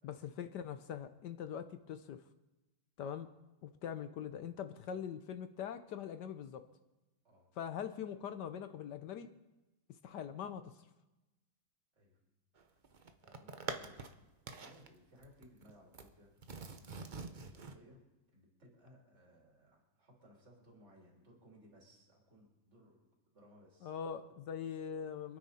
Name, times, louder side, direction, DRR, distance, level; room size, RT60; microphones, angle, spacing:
voice 1, 0.0-2.2 3.0-3.3 3.6-6.6 7.6-9.3 10.0-10.7 23.8-25.4, left 8 dB, 65° left, 10 dB, 1.2 m, -42 dB
voice 2, 7.2-7.6 11.9-12.3 13.2-16.3 17.1-18.0 18.3-23.9, equal, 35° right, -2 dB, 3.5 m, -63 dB
sound 1, 12.6-14.1 14.5-14.9 15.2-16.1 16.4-17.8, right 4 dB, 70° right, 0.4 m, -45 dB
27.0 x 9.5 x 4.2 m, 1.0 s
omnidirectional pair, 2.2 m